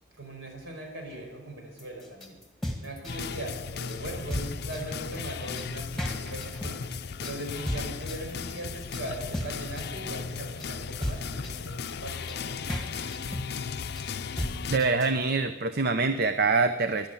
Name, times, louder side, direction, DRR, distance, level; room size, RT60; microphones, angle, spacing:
voice 1, 0.2-2.4 2.8-6.9 7.2-12.8, right 1 dB, 70° right, 1 dB, 5.1 m, -40 dB
sound 1, 1.8-15.2, equal, ahead, 1.7 m, -36 dB
sound 2, 3.1-14.8, left 6 dB, 55° left, 0.5 m, -36 dB
voice 2, 14.7-17.1, right 4 dB, 55° right, 9 dB, 0.7 m, -25 dB
12.5 x 11.5 x 9.1 m, 1.2 s
head